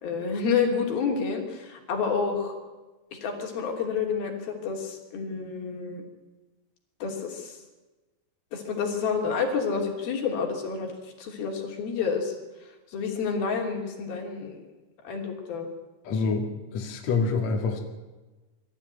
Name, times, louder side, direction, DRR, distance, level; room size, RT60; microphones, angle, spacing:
voice 1, 0.0-2.6 3.2-6.0 7.0-7.6 8.5-10.9 11.2-12.3 12.9-14.6 15.0-15.7, left 5 dB, 70° left, 2 dB, 4.8 m, -29 dB
voice 2, 16.0-16.5 16.7-17.8, left 4 dB, 50° left, 1 dB, 3.2 m, -26 dB
23.5 x 13.5 x 9.5 m, 1.2 s
omnidirectional pair, 4.5 m